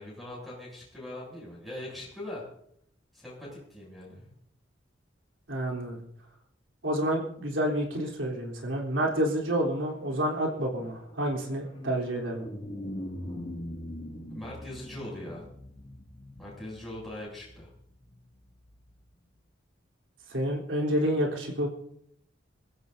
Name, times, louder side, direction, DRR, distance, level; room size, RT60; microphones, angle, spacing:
voice 1, 0.0-2.4 3.1-4.3 14.3-15.4 16.4-17.7, left 1 dB, ahead, -4 dB, 7.4 m, -41 dB
voice 2, 5.5-6.0 6.8-12.4 20.3-21.7, right 1 dB, 80° right, 0 dB, 3.5 m, -29 dB
sound 1, 9.5-19.0, left 1 dB, 30° left, 2.3 m, -43 dB
27.0 x 15.0 x 2.7 m, 0.70 s
head